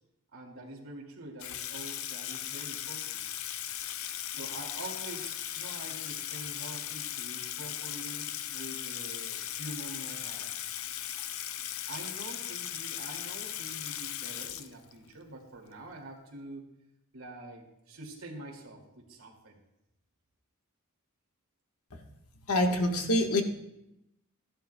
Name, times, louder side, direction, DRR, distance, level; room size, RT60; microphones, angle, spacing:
voice 1, 0.3-3.2 4.3-10.5 11.9-16.7 17.1-19.6, right 1 dB, 70° right, -1 dB, 2.3 m, -45 dB
Water tap faucet / Sink (filling or washing), 1.4-15.1, left 11 dB, 65° left, 0.5 m, -38 dB
voice 2, 22.5-23.4, left 1 dB, 85° left, 3 dB, 1.3 m, -26 dB
15.5 x 11.5 x 2.2 m, 0.88 s
head